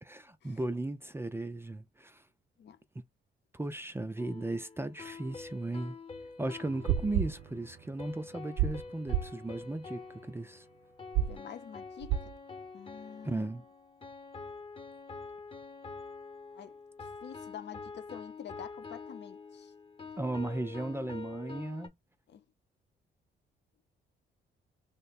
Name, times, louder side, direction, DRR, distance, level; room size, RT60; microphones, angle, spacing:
voice 1, 0.0-2.2 3.5-6.0 6.4-10.6 13.2-13.6 20.2-21.9, right 2 dB, 10° right, 0.4 m, -36 dB
sound 1, 4.2-21.9, left 4 dB, 25° left, 1.0 m, -47 dB
sound 2, 6.7-8.1 8.4-8.8 9.1-9.3 11.1-11.4 12.0-12.3, right 11 dB, 70° right, 0.5 m, -31 dB
voice 2, 11.2-12.2 12.7-13.5 16.5-19.7 22.3-22.4, left 9 dB, 60° left, 0.8 m, -48 dB
3.0 x 2.2 x 4.1 m
cardioid pair, 90°, 20 cm